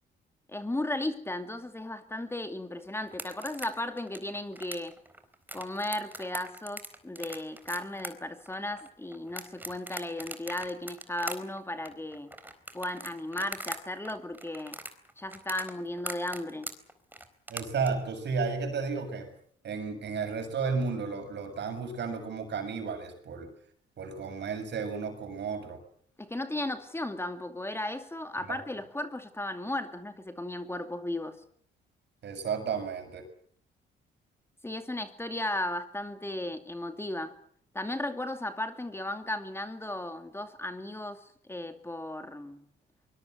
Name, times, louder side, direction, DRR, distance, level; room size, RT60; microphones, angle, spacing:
voice 1, 0.5-4.9 5.5-12.3 12.7-14.8 15.2-16.7 26.2-31.4 34.6-37.3 37.7-42.6, left 1 dB, 10° left, 7 dB, 2.5 m, -35 dB
sound 1, 3.1-13.8 14.0-17.9, right 1 dB, 10° right, 4.1 m, -41 dB
voice 2, 17.5-19.3 19.6-23.5 24.0-25.8 28.5-28.6 32.2-33.3, right 5 dB, 60° right, 7 dB, 7.1 m, -33 dB
23.5 x 21.5 x 8.0 m, 0.62 s
cardioid pair, 90°, 20 cm